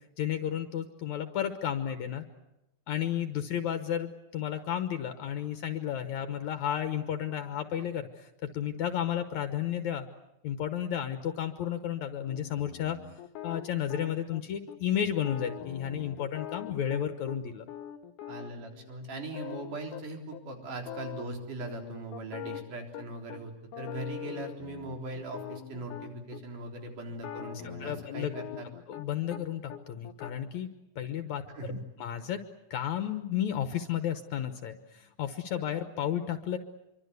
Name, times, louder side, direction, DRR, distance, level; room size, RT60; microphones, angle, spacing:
voice 1, 0.2-2.2 2.9-10.1 10.4-13.0 13.4-17.6 27.8-28.3 28.9-30.7 31.0-32.4 32.7-36.6, left 10 dB, 70° left, 8 dB, 2.4 m, -32 dB
sound 1, 12.3-14.4 14.7-14.8 15.1-17.4 17.7-20.0 20.3-20.4 20.7-21.3 21.6-23.4 23.7-26.4 27.1-29.4 29.7-30.3, left 10 dB, 85° left, 2.7 m, -43 dB
voice 2, 18.3-28.8 31.5-31.8, right 2 dB, 80° right, 3 dB, 5.3 m, -40 dB
26.0 x 24.5 x 8.1 m, 0.91 s
omnidirectional pair, 3.6 m